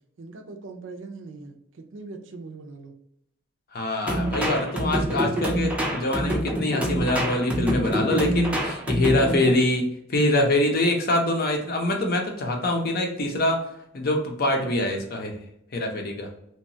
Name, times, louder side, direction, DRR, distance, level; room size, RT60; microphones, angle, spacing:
voice 1, 0.2-2.9, right 3 dB, 65° right, 4 dB, 0.4 m, -41 dB
voice 2, 3.7-13.7 13.9-15.4 15.7-16.3, left 1 dB, 50° left, 2 dB, 0.6 m, -24 dB
sound 1, 4.1-9.6, right 1 dB, 5° right, 0.4 m, -26 dB
2.9 x 2.2 x 2.7 m, 0.77 s
head